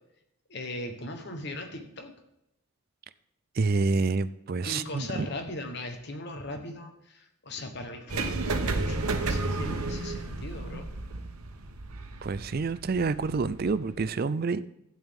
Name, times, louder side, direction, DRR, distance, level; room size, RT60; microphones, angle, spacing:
voice 1, 0.5-2.1 4.6-10.9, left 1 dB, 50° left, 1.2 m, -39 dB
voice 2, 3.6-5.3 12.2-14.6, right 4 dB, 45° right, 0.4 m, -28 dB
sound 1, 8.1-14.0, right 2 dB, 90° right, 1.0 m, -32 dB
12.5 x 8.9 x 3.7 m
head